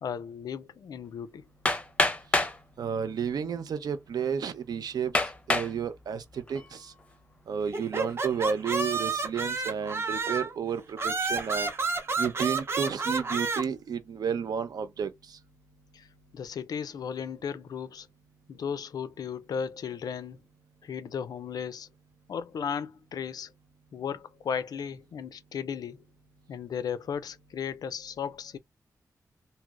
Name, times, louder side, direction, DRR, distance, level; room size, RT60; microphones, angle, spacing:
voice 1, 0.0-1.5 15.9-16.1 16.3-18.1 18.5-20.4 20.8-21.9 22.3-23.5 23.9-26.0 26.5-28.6, left 7 dB, 80° left, 0.4 m, -35 dB
Hammer, 1.7-2.6 3.5-3.6 4.2-4.3 5.1-5.7 6.3-6.8, left 2 dB, 20° left, 0.5 m, -26 dB
voice 2, 2.8-6.9 7.5-11.7 12.2-15.4, right 7 dB, 90° right, 0.6 m, -32 dB
sound 1, 7.7-10.6 11.0-13.6, right 4 dB, 40° right, 0.6 m, -30 dB
3.1 x 2.8 x 2.4 m
wide cardioid pair, 170°, 7 cm